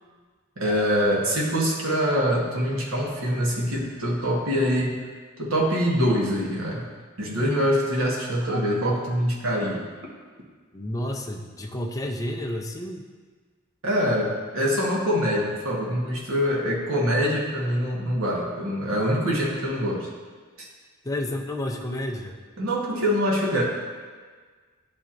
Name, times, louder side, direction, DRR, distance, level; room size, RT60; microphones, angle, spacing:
voice 1, 0.6-5.0 5.4-6.8 7.2-9.8 13.8-20.1 20.6-20.7 22.6-23.6, equal, 80° right, -3 dB, 1.2 m, -24 dB
voice 2, 10.7-13.0 21.0-22.4, left 1 dB, 15° left, 1 dB, 0.5 m, -30 dB
10.5 x 4.3 x 2.5 m, 1.5 s
head